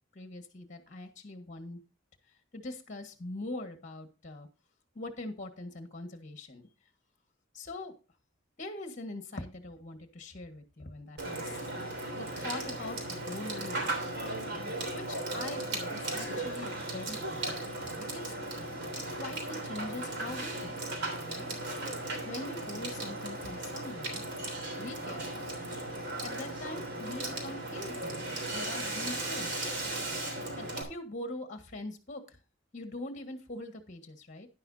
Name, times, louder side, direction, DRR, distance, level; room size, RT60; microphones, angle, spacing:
voice 1, 0.1-1.8 2.5-4.5 4.9-6.7 7.5-7.9 8.6-11.7 12.1-14.1 14.9-17.6 18.0-18.3 19.1-20.8 21.2-21.5 22.1-24.2 24.8-25.5 26.2-28.3 28.5-29.6 30.6-32.4 32.7-34.5, left 2 dB, 40° left, 7 dB, 1.6 m, -43 dB
Water / Water tap faucet / Sink (filling or washing), 11.2-30.8, right 2 dB, 60° right, 3.3 m, -36 dB
11.0 x 10.5 x 2.7 m, 0.32 s
head